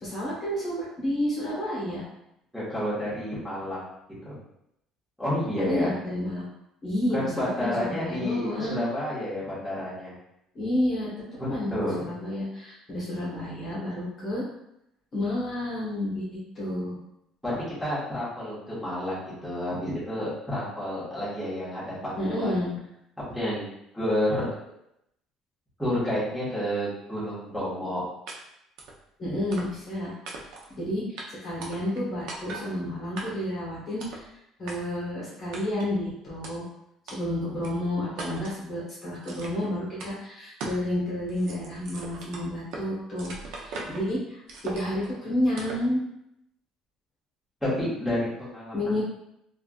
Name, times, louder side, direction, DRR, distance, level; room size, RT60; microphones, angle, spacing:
voice 1, 0.0-2.0 5.6-6.5 6.8-8.9 10.5-11.1 11.5-11.7 12.0-14.4 15.1-17.0 22.2-22.7 29.2-30.1 30.7-34.3 34.6-36.7 37.0-46.0 48.7-49.0, left 1 dB, 35° left, -7 dB, 1.3 m, -30 dB
voice 2, 2.5-3.8 4.2-4.4 5.2-5.9 7.1-10.1 11.4-12.0 17.4-22.6 23.2-23.7 23.9-24.5 25.8-28.0 47.6-49.0, left 1 dB, ahead, -11 dB, 1.5 m, -30 dB
sound 1, 28.3-28.4 28.8-29.0 29.5-29.9 30.2-30.7 31.2-31.3 31.6-32.0 32.3-32.7 33.2-33.5 34.0-34.2 34.7-34.8 35.5-35.9 36.4-36.5 37.1-37.2 37.6-37.7 38.2-38.6 39.2-39.7 40.0-40.1 40.6-40.8 41.2-42.9 43.2-44.1 44.5-45.1 45.6-45.9, right 3 dB, 75° right, 0.6 m, -39 dB
3.5 x 2.4 x 2.4 m, 0.79 s
cardioid pair, 135°, 0 cm